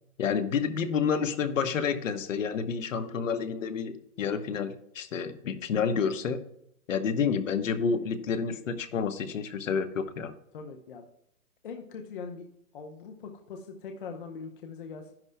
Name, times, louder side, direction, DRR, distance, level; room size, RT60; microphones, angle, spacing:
voice 1, 0.2-6.4 6.9-10.3, left 6 dB, 55° left, 9 dB, 1.1 m, -29 dB
voice 2, 10.5-11.1 11.6-12.5 12.7-15.1, left 5 dB, 35° left, 3 dB, 0.8 m, -41 dB
12.0 x 10.5 x 2.2 m, 0.73 s
hypercardioid pair, 170°, 46 cm